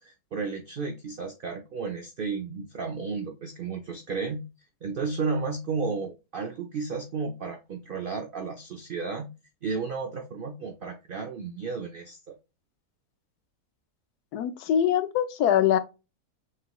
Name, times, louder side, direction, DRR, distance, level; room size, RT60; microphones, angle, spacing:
voice 1, 0.0-4.5 4.8-9.3 9.6-12.4, right 4 dB, 85° right, 0.4 m, -33 dB
voice 2, 14.3-15.8, left 10 dB, 85° left, 1.1 m, -23 dB
5.9 x 3.0 x 2.3 m
omnidirectional pair, 1.6 m